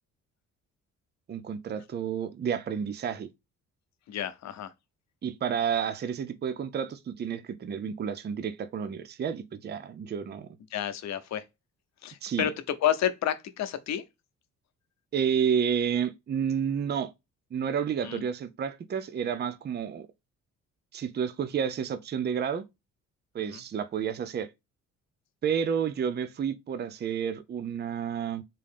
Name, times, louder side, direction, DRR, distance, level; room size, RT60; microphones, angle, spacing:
voice 1, 1.3-3.3 5.2-10.5 12.2-12.5 15.1-17.1 17.5-20.1 20.9-22.6 23.3-24.5 25.4-28.4, right 7 dB, 35° right, 0.5 m, -30 dB
voice 2, 4.1-4.7 10.7-11.4 12.0-12.5 12.8-14.0 18.0-18.2 23.5-23.6, left 11 dB, 65° left, 0.7 m, -30 dB
3.8 x 2.7 x 3.5 m
cardioid pair, 90°, 30 cm